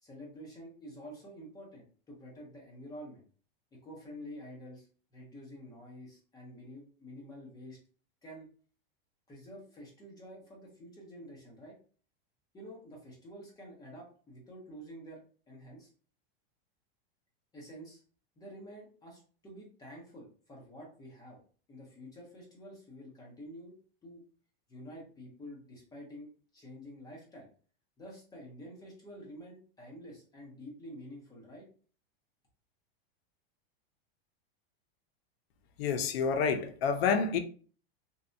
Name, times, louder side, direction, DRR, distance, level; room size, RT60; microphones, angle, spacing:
voice 1, 0.0-3.2 3.7-7.8 8.2-8.5 9.3-11.8 12.5-15.2 15.5-15.9 17.5-18.0 18.4-21.4 21.7-23.8 24.0-24.2 24.7-27.5 28.0-31.7, equal, 10° left, 0.6 m, -49 dB
voice 2, 35.8-37.4, left 6 dB, 75° left, 0.5 m, -28 dB
2.7 x 2.2 x 2.5 m
supercardioid pair, 155°, 30 cm